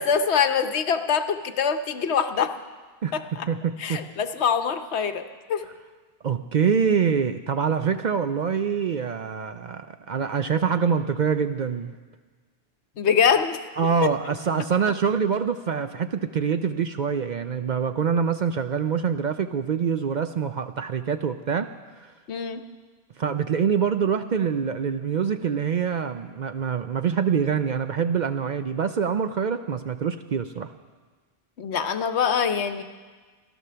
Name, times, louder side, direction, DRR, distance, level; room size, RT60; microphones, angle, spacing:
voice 1, 0.0-2.5 3.1-3.5 3.8-5.6 13.0-13.6 22.3-22.6 31.6-32.8, left 7 dB, 75° left, 8 dB, 1.1 m, -24 dB
voice 2, 3.0-4.0 6.2-11.9 13.8-21.7 22.0-22.1 23.2-30.7, right 6 dB, 55° right, 9 dB, 0.5 m, -25 dB
14.5 x 12.0 x 6.8 m, 1.4 s
omnidirectional pair, 1.1 m